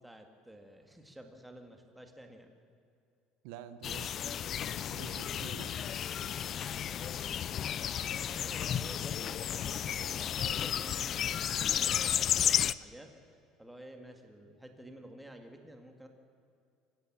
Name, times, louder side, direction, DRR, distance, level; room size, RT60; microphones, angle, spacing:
voice 1, 0.0-2.5 6.3-7.8 8.2-13.1 13.6-16.1, right 1 dB, 5° right, 4 dB, 2.1 m, -52 dB
voice 2, 3.4-5.9, right 10 dB, 75° right, 11 dB, 1.4 m, -49 dB
sound 1, 3.8-12.7, left 9 dB, 35° left, 0.5 m, -33 dB
26.5 x 15.5 x 8.8 m, 2.5 s
cardioid pair, 160°, 0 cm